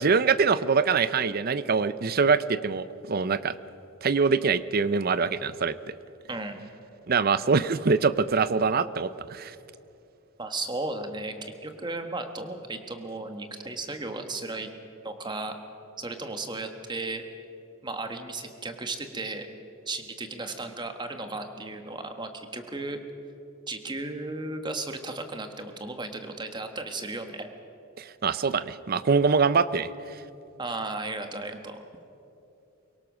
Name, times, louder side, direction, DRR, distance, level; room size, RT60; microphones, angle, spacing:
voice 1, 0.0-3.5 4.0-5.8 7.1-9.5 28.0-29.9, right 5 dB, 45° right, 15 dB, 0.5 m, -24 dB
voice 2, 6.3-6.6 10.4-14.7 15.0-15.5 16.0-17.2 17.8-19.5 19.9-23.0 23.7-27.5 30.6-31.8, right 2 dB, 20° right, 6 dB, 1.3 m, -35 dB
23.0 x 18.0 x 6.2 m, 2.8 s
head